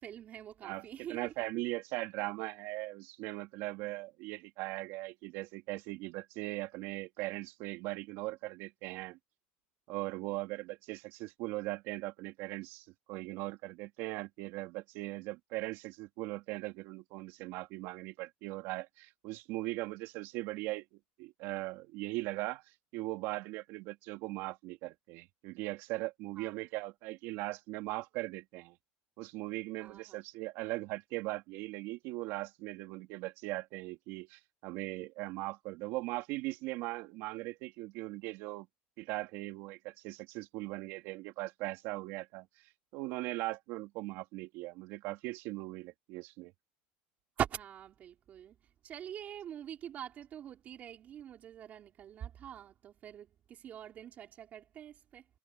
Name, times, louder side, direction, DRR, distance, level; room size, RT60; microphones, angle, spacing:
voice 1, 0.0-1.3 26.4-26.6 29.8-30.2 47.4-48.6 48.8-55.3, right 10 dB, 35° right, 3.7 m, -43 dB
voice 2, 1.1-9.2 9.9-22.6 22.9-28.8 29.2-38.7 39.0-42.5 42.9-46.5, right 20 dB, 60° right, 3.5 m, -39 dB
cardioid pair, 145°, 5 cm